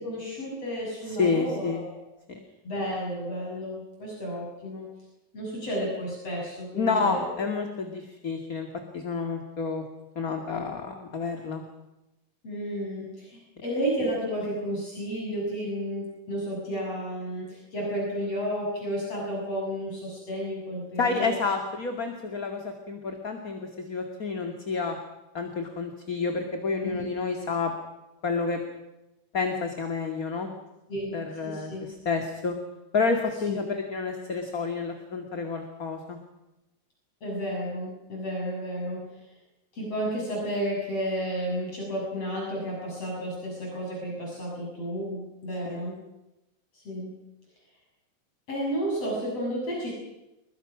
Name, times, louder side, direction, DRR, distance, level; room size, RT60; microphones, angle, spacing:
voice 1, 0.0-2.0 2.6-4.8 5.3-7.4 12.4-21.4 26.8-27.1 30.9-31.2 31.4-31.8 33.5-33.6 37.2-39.0 39.7-46.0 46.7-47.1 48.5-49.9, equal, 50° left, -3 dB, 8.0 m, -32 dB
voice 2, 1.1-1.8 2.3-2.4 6.7-8.7 8.9-9.8 10.2-11.6 21.0-25.0 25.3-27.7 28.2-28.6 29.3-30.5 31.1-32.6 32.9-36.2 45.7-45.8, left 4 dB, 30° left, 4 dB, 2.3 m, -29 dB
29.5 x 22.0 x 6.2 m, 0.94 s
omnidirectional pair, 3.6 m